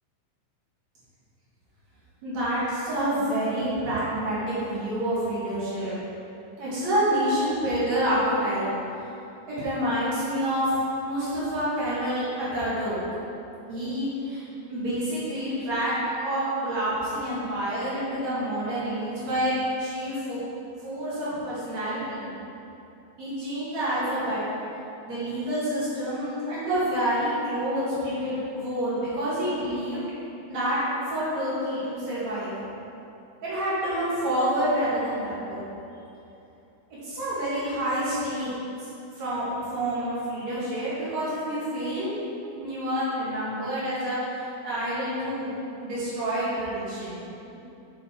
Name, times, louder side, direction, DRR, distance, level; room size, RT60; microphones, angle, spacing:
voice 1, 2.2-6.0 6.6-8.7 9.5-10.7 11.0-13.0 13.7-14.4 14.7-19.5 19.8-20.4 20.8-22.3 23.2-24.4 25.1-30.0 30.5-30.8 31.1-32.5 33.4-35.6 37.0-38.5 38.8-38.9 39.2-42.2 42.6-45.5 45.8-47.2 47.5-47.6, right 1 dB, 50° right, -10 dB, 2.3 m, -28 dB
7.6 x 6.4 x 4.4 m, 2.8 s
omnidirectional pair, 5.2 m